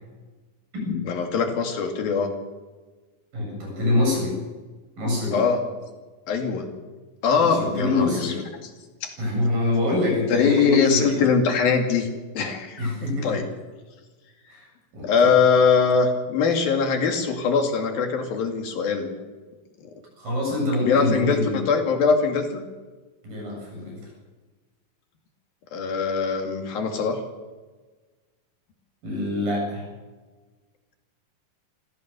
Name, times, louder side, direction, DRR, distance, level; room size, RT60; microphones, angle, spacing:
voice 1, 1.1-2.3 5.3-5.6 6.3-6.7 7.2-8.3 9.0-9.2 10.3-12.1 12.4-12.9 13.2-13.4 15.0-19.1 20.8-22.6 25.7-27.2, left 5 dB, 85° left, 4 dB, 4.2 m, -22 dB
voice 2, 3.3-4.4 5.0-5.4 7.4-8.5 9.2-11.3 12.8-13.4 14.5-14.7 14.9-15.3 20.2-21.6 23.2-24.0 29.0-29.9, left 2 dB, 75° right, -1 dB, 9.4 m, -25 dB
24.5 x 15.5 x 6.8 m, 1.3 s
omnidirectional pair, 4.0 m